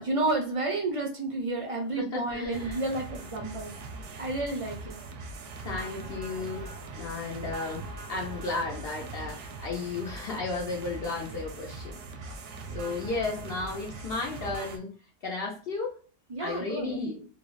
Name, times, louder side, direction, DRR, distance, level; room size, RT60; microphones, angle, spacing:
voice 1, 0.0-3.7 4.2-5.0 16.3-17.0, right 2 dB, 50° right, 3 dB, 0.4 m, -31 dB
voice 2, 2.0-2.8 5.6-6.7 7.0-12.4 12.7-14.9 15.2-16.0 16.4-17.2, left 3 dB, 65° left, -1 dB, 0.8 m, -34 dB
sound 1, 2.5-14.8, right 3 dB, 85° right, 0.9 m, -41 dB
3.3 x 2.0 x 2.3 m, 0.41 s
omnidirectional pair, 1.2 m